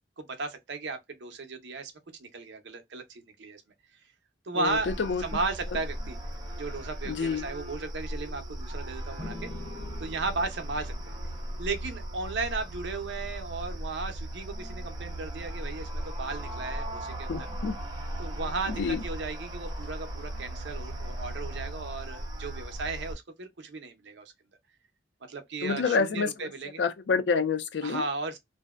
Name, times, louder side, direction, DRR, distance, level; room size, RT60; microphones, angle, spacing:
voice 1, 0.2-1.9 2.2-3.6 4.5-4.9 5.2-6.2 6.6-9.5 10.0-11.2 11.6-17.4 18.2-24.2 25.3-26.8 27.8-28.4, right 3 dB, 70° right, 0.6 m, -35 dB
voice 2, 4.5-5.2 7.1-7.5 17.3-17.8 18.7-19.0 25.6-26.3 26.8-28.0, left 5 dB, 70° left, 0.4 m, -28 dB
sound 1, 4.7-23.2, right 1 dB, 20° right, 0.6 m, -37 dB
sound 2, 9.2-12.7, left 3 dB, 40° left, 1.1 m, -46 dB
2.6 x 2.1 x 2.3 m
head